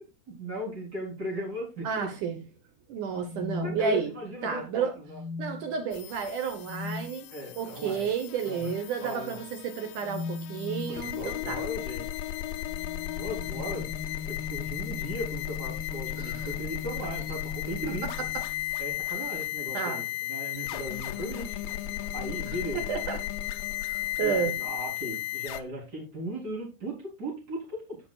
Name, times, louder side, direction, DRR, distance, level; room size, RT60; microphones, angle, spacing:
voice 1, 0.3-2.1 3.6-5.2 7.3-8.1 8.4-8.7 9.0-9.4 10.9-12.3 13.2-13.9 14.3-18.1 18.8-22.9 24.0-28.0, equal, 25° right, -2 dB, 3.9 m, -37 dB
voice 2, 1.8-2.4 2.9-4.1 4.4-4.9 5.4-7.3 7.6-11.6 16.2-16.5 19.7-20.0 22.5-23.2 23.9-24.5, right 6 dB, 65° right, 6 dB, 2.2 m, -31 dB
sound 1, 3.1-4.4 5.0-5.8 6.6-7.1 8.5-8.9 10.0-11.0 12.5-14.4 15.4-15.9 17.1-17.4, left 3 dB, 20° left, 5.6 m, -39 dB
sound 2, 5.9-25.6, left 13 dB, 80° left, 2.2 m, -35 dB
16.5 x 6.0 x 2.4 m, 0.26 s
omnidirectional pair, 4.5 m